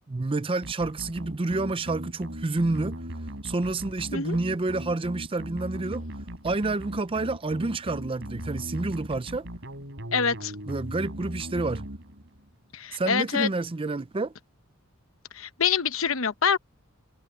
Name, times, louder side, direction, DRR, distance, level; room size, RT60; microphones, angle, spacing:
voice 1, 0.1-3.0 3.4-6.1 6.4-9.5 10.7-11.9 12.9-14.3, right 2 dB, 25° right, 0.5 m, -29 dB
sound 1, 0.6-12.5, equal, 60° right, 5.6 m, -38 dB
voice 2, 10.1-10.5 12.7-13.5 15.4-16.6, left 6 dB, 75° left, 1.0 m, -25 dB
head